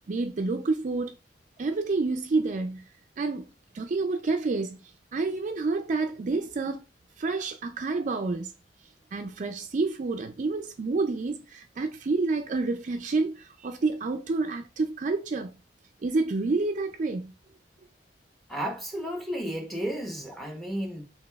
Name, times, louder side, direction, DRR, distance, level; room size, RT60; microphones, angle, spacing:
voice 1, 0.1-1.2 1.6-2.8 3.2-3.5 3.7-6.8 7.2-8.5 9.1-15.5 16.0-17.3, right 3 dB, 45° right, 0.4 m, -29 dB
voice 2, 18.5-21.1, equal, ahead, 0.9 m, -33 dB
5.0 x 3.3 x 2.3 m
head